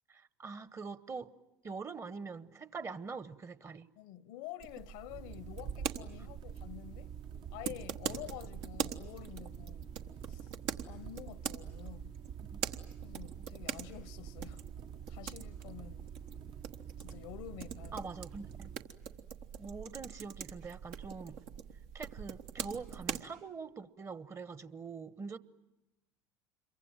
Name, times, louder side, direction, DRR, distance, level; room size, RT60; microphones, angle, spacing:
voice 1, 0.1-1.3 1.6-3.9 12.5-12.8 17.9-18.7 19.6-21.4 21.9-25.4, right 4 dB, 30° right, 1.2 m, -44 dB
voice 2, 4.0-7.1 7.5-9.9 10.3-10.5 10.9-12.1 13.0-14.6 15.1-16.1 17.0-18.0, left 13 dB, 70° left, 0.9 m, -48 dB
sound 1, 4.6-23.2, right 8 dB, 65° right, 1.3 m, -43 dB
sound 2, 5.1-18.8, right 8 dB, 50° right, 1.0 m, -49 dB
27.5 x 23.0 x 8.9 m
hypercardioid pair, 75°, 10 cm